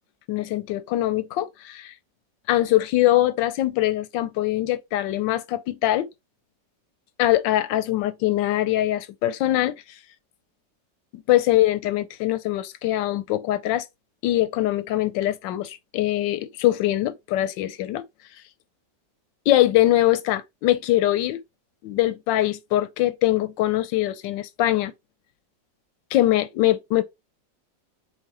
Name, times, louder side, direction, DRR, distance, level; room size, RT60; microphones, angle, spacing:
voice 1, 0.3-1.9 2.5-6.1 7.2-9.8 11.1-13.9 14.2-18.0 19.5-21.4 21.8-24.9 26.1-27.0, left 14 dB, 85° left, 1.3 m, -22 dB
4.7 x 3.8 x 2.8 m
omnidirectional pair, 2.0 m